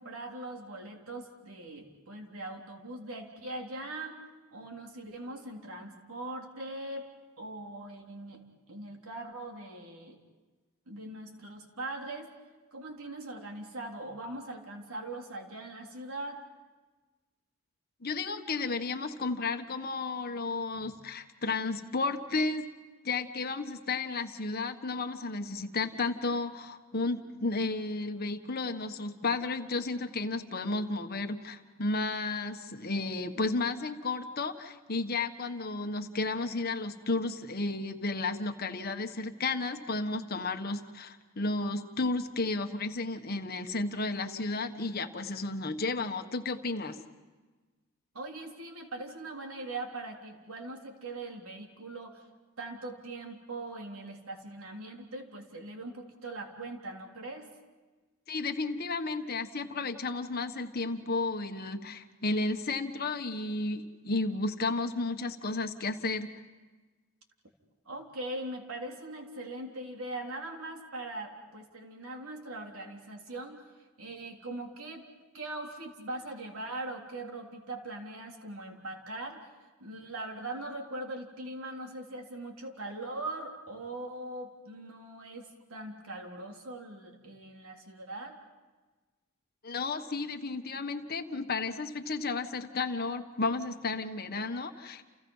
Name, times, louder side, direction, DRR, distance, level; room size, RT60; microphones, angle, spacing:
voice 1, 0.0-4.2 4.5-7.1 7.4-8.4 8.7-10.2 10.9-12.3 12.7-16.4 20.8-20.9 48.1-52.2 52.6-57.5 67.9-73.6 74.0-75.1 75.3-79.5 79.8-88.4, right 2 dB, 80° right, 2 dB, 3.6 m, -41 dB
voice 2, 18.0-22.7 23.0-47.0 58.3-66.3 89.6-95.0, left 3 dB, 45° left, 7 dB, 1.4 m, -33 dB
30.0 x 29.5 x 5.6 m, 1.3 s
head